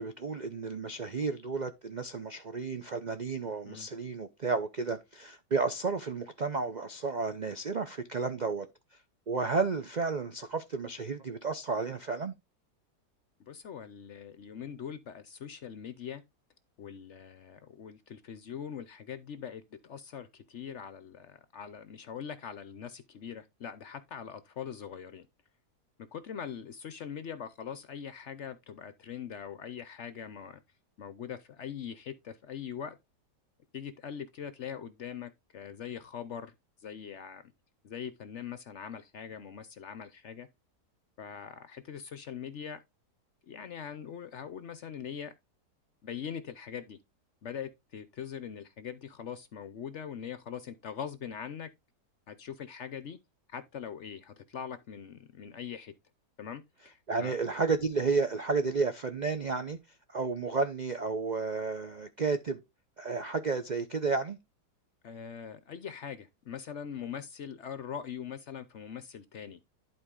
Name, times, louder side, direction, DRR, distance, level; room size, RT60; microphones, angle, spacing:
voice 1, 0.0-8.7 9.3-12.3 57.1-59.8 60.1-62.6 63.0-64.4, right 4 dB, 80° right, 0.4 m, -32 dB
voice 2, 13.4-16.2 16.8-25.3 26.1-30.6 31.0-33.0 33.7-36.5 36.8-37.5 37.8-40.5 41.2-42.8 43.5-45.3 46.0-47.0 47.4-51.7 52.3-53.2 53.5-55.9 56.4-57.4 65.0-69.6, left 8 dB, 60° left, 0.7 m, -42 dB
11.0 x 4.5 x 3.7 m
omnidirectional pair, 1.8 m